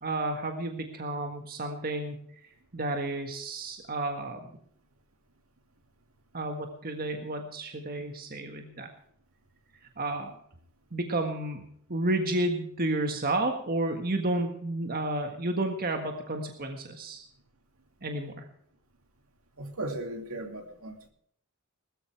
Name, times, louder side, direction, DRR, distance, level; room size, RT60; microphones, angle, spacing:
voice 1, 0.0-2.3 2.7-4.5 6.3-8.9 10.0-10.4 10.9-17.3 18.0-18.5, right 2 dB, 45° right, 4 dB, 1.6 m, -31 dB
voice 2, 19.6-21.1, right 2 dB, 75° right, 5 dB, 2.5 m, -37 dB
20.5 x 13.5 x 3.4 m, 0.66 s
head